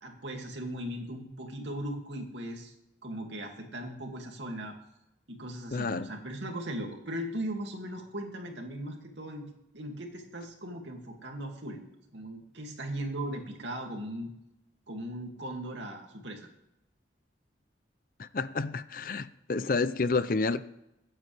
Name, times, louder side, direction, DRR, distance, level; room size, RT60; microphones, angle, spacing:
voice 1, 0.0-2.7 3.0-4.7 5.3-11.8 12.1-14.3 14.9-16.5, right 1 dB, 75° right, 2 dB, 2.4 m, -38 dB
voice 2, 5.7-6.1 18.2-20.6, left 3 dB, 50° left, 14 dB, 0.5 m, -30 dB
23.5 x 9.1 x 3.4 m, 0.86 s
head